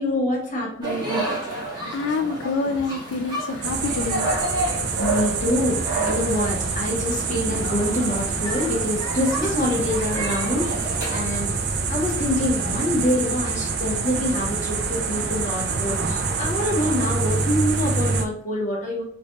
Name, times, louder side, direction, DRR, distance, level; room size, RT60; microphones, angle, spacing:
voice 1, 0.0-1.5 5.0-11.6 11.9-19.0, left 1 dB, 40° left, -3 dB, 1.2 m, -26 dB
sound 1, 0.8-11.2, right 2 dB, 25° right, 1.3 m, -30 dB
voice 2, 1.9-4.3, left 3 dB, 75° left, 5 dB, 0.3 m, -26 dB
sound 2, 3.6-18.3, right 4 dB, 60° right, 0.5 m, -26 dB
3.2 x 3.0 x 2.9 m, 0.66 s
head